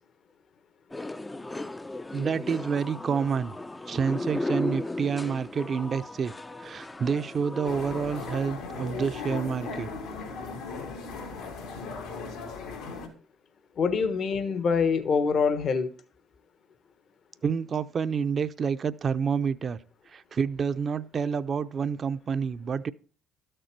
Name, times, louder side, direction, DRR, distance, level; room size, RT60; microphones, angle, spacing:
sound 1, 0.9-8.3, left 2 dB, 15° left, 0.6 m, -36 dB
voice 1, 2.1-3.5 3.9-6.3 6.6-9.9 17.4-19.8 20.1-22.9, right 6 dB, 40° right, 0.6 m, -28 dB
sound 2, 7.6-13.1, left 4 dB, 80° left, 3.3 m, -37 dB
voice 2, 13.8-15.9, left 5 dB, 50° left, 1.3 m, -25 dB
12.5 x 6.7 x 4.6 m
supercardioid pair, 70°, 0 cm